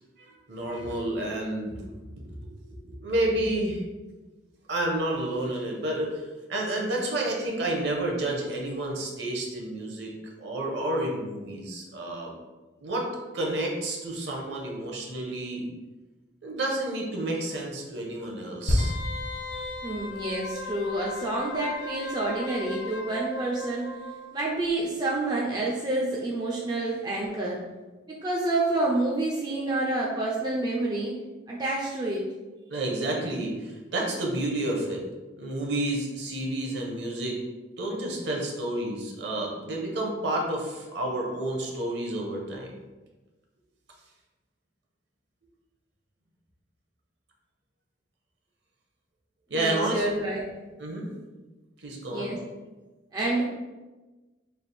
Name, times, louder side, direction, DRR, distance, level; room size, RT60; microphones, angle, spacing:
voice 1, 0.2-2.4 2.7-3.8 4.7-6.2 6.5-10.1 10.4-12.3 12.8-13.1 13.3-15.7 16.4-19.0 32.7-35.0 35.4-37.4 37.8-42.8 49.5-50.0 50.8-51.1 51.8-52.3, right 1 dB, 60° right, 0 dB, 0.8 m, -30 dB
sound 1, 18.7-22.3 22.6-22.8, left 1 dB, 85° left, 0.7 m, -31 dB
Wind instrument woodwind instrument, 18.8-24.3 24.6-24.7, left 2 dB, 70° left, 0.3 m, -37 dB
voice 2, 19.8-23.9 24.3-27.6 28.1-31.2 31.5-32.3 49.5-50.4 52.1-52.4 53.1-53.4, right 2 dB, 20° right, -3 dB, 0.4 m, -28 dB
3.3 x 2.4 x 4.1 m, 1.2 s
head